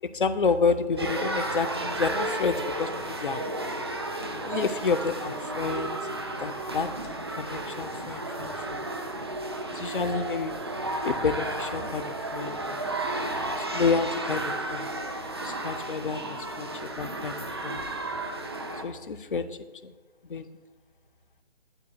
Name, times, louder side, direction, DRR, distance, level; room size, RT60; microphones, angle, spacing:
voice 1, 0.0-3.4 4.4-6.0 6.4-8.9 9.7-10.5 11.0-12.8 13.5-14.9 15.4-17.8 18.8-19.9 20.2-20.5, left 5 dB, 50° left, 12 dB, 0.6 m, -30 dB
sound 1, 1.0-18.8, right 2 dB, 25° right, 0.5 m, -33 dB
11.5 x 11.0 x 2.2 m, 1.4 s
figure-of-eight pair, 150°, 32 cm